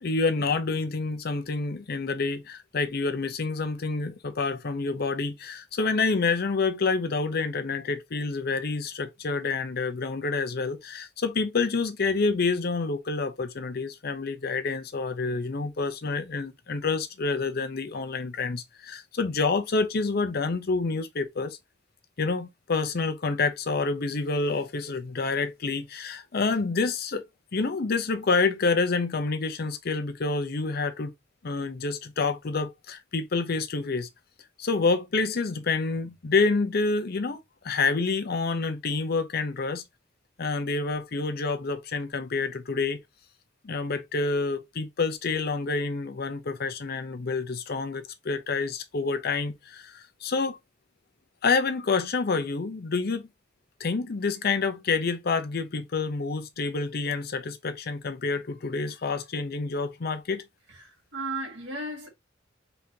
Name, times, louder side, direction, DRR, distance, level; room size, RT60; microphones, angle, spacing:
voice 1, 0.0-21.6 22.2-27.3 27.5-31.1 31.4-34.1 34.6-39.8 40.4-43.0 43.6-50.6 51.4-53.2 53.8-60.4, left 4 dB, 55° left, 0.6 m, -28 dB
voice 2, 60.7-62.1, right 2 dB, 70° right, 2.2 m, -35 dB
4.0 x 3.7 x 2.8 m
head